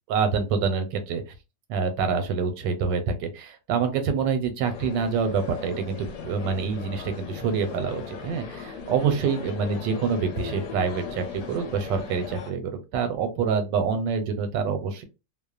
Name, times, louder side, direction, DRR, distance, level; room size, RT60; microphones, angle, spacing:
voice 1, 0.1-1.2 1.7-15.0, right 5 dB, 80° right, 8 dB, 1.3 m, -26 dB
sound 1, 4.6-12.5, left 6 dB, 75° left, 1.2 m, -38 dB
3.0 x 2.1 x 2.3 m, 0.27 s
omnidirectional pair, 2.0 m